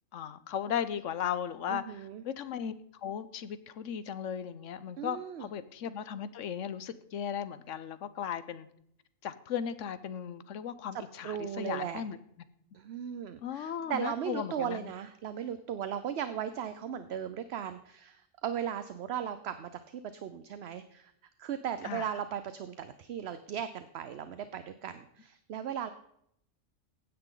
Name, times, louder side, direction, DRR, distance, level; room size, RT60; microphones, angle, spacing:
voice 1, 0.1-8.7 9.2-12.2 13.4-14.8 21.8-22.1, left 8 dB, 75° left, 14 dB, 1.1 m, -36 dB
voice 2, 1.7-2.2 5.0-5.5 11.2-12.0 12.7-21.1 21.4-25.9, right 9 dB, 60° right, 11 dB, 0.9 m, -37 dB
15.5 x 9.8 x 3.8 m, 0.74 s
omnidirectional pair, 1.3 m